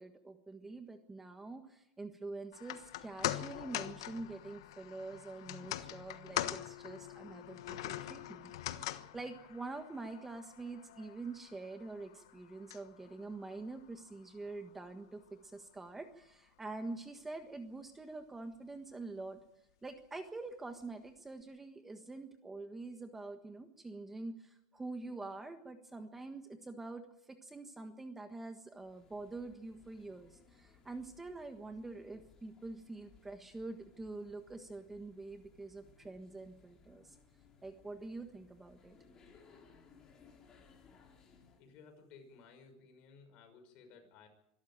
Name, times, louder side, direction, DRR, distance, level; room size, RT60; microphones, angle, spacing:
voice 1, 0.0-19.4 19.8-27.0 27.3-37.2 37.6-39.0, right 3 dB, 10° right, 7 dB, 1.5 m, -46 dB
sound 1, 2.5-14.9 15.2-15.3, left 13 dB, 90° left, 1.3 m, -43 dB
sound 2, 28.8-41.7, left 5 dB, 25° left, 4.1 m, -64 dB
voice 2, 41.6-44.3, left 5 dB, 45° left, 5 dB, 5.9 m, -58 dB
25.0 x 13.0 x 8.9 m, 0.81 s
supercardioid pair, 145°, 2 cm